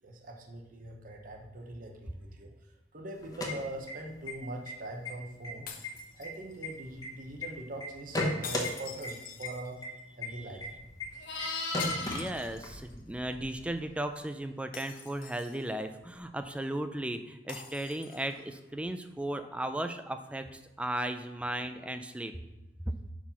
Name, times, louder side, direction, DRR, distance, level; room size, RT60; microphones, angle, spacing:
voice 1, 0.0-2.5 2.9-5.7 6.1-9.8 10.2-10.7, right 2 dB, 50° right, 2 dB, 0.9 m, -42 dB
sound 1, 3.2-4.3 4.6-4.7 5.0-5.5 5.8-7.5 7.8-8.7 9.0-9.1 9.4-9.5 9.8-9.9 10.2-10.3 10.6-10.7 11.0-11.1 11.4-11.5 11.7-12.8, left 2 dB, 20° left, 1.1 m, -34 dB
sound 2, 5.7-6.7 8.4-10.0 11.8-13.0 13.3-13.4 14.7-15.8 17.5-18.4, left 6 dB, 50° left, 0.8 m, -45 dB
Livestock farm animals working animals, 10.6-13.8 18.2-18.4, left 3 dB, 70° left, 1.2 m, -39 dB
voice 2, 12.0-22.3, right 1 dB, 5° right, 8 dB, 0.4 m, -36 dB
5.5 x 4.9 x 5.5 m, 0.98 s
head